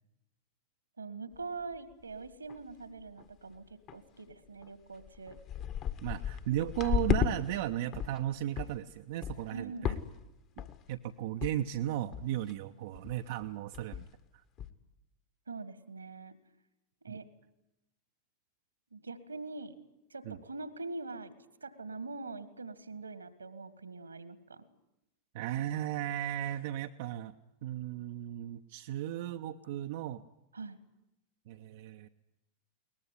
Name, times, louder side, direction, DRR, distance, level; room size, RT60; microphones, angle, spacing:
voice 1, 1.0-3.6 3.9-5.4 9.5-9.9 15.5-16.4 17.0-17.3 18.9-19.8 20.1-21.3 21.6-24.6 30.5-30.8, right 3 dB, 75° right, 14 dB, 1.9 m, -43 dB
sound 1, 1.3-1.4 1.9-2.0 2.3-2.7 3.0-3.3 3.9-4.0 4.6-4.7 5.0-7.3 7.7-8.2 8.6-8.8 9.2-9.5 9.8-10.3 10.6-10.9 11.4-11.5 11.8-11.9 12.1-12.5 12.9-13.2 13.4-13.5 13.7-14.2 14.6-14.7, left 9 dB, 35° left, 1.7 m, -34 dB
voice 2, 6.0-10.0 10.9-14.0 17.1-17.2 20.2-20.4 25.3-27.3 27.6-30.2 31.5-32.1, right 12 dB, 50° right, 6 dB, 0.8 m, -35 dB
22.0 x 20.0 x 9.6 m, 0.89 s
figure-of-eight pair, 90°, 0 cm